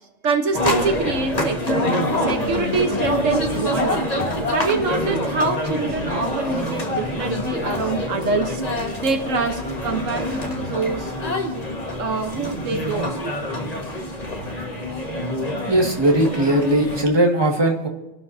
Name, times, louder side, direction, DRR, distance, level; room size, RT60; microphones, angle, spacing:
voice 1, 0.2-4.0 4.5-8.6 9.0-11.1 12.0-13.2, right 4 dB, 75° right, 5 dB, 1.4 m, -25 dB
sound 1, 0.5-17.0, left 1 dB, 30° left, 1.7 m, -26 dB
voice 2, 15.7-17.9, right 1 dB, 20° right, 0 dB, 1.9 m, -19 dB
26.0 x 12.0 x 2.7 m, 1.0 s
omnidirectional pair, 1.3 m